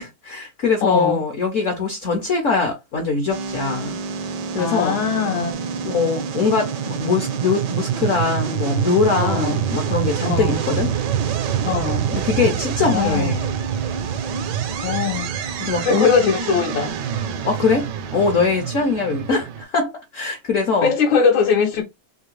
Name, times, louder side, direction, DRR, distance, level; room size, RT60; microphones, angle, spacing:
voice 1, 0.0-4.0 4.5-5.0 5.8-10.9 12.1-13.5 15.6-16.1 17.4-19.4 19.7-20.9, left 4 dB, 55° left, 0.9 m, -22 dB
voice 2, 0.8-1.2 4.6-5.5 9.2-9.6 10.2-10.6 11.7-12.1 12.8-13.3 14.8-15.3 15.8-16.9 19.3-19.4 20.8-21.8, left 6 dB, 80° left, 1.5 m, -21 dB
sound 1, 3.3-19.6, right 8 dB, 70° right, 1.1 m, -26 dB
3.5 x 2.7 x 3.1 m
omnidirectional pair, 2.2 m